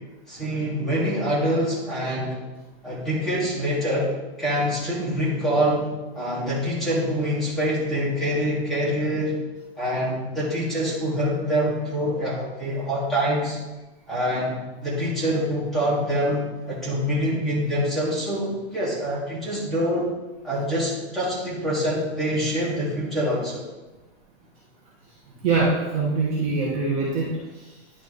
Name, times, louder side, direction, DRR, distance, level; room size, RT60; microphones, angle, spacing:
voice 1, 0.3-2.4 2.8-4.1 4.4-9.4 9.8-13.6 14.1-20.1 20.4-23.6, equal, ahead, -8 dB, 1.7 m, -25 dB
voice 2, 25.4-27.3 27.5-27.7, right 3 dB, 20° right, -7 dB, 1.3 m, -23 dB
10.5 x 4.1 x 4.1 m, 1.1 s
hypercardioid pair, 170°, 33 cm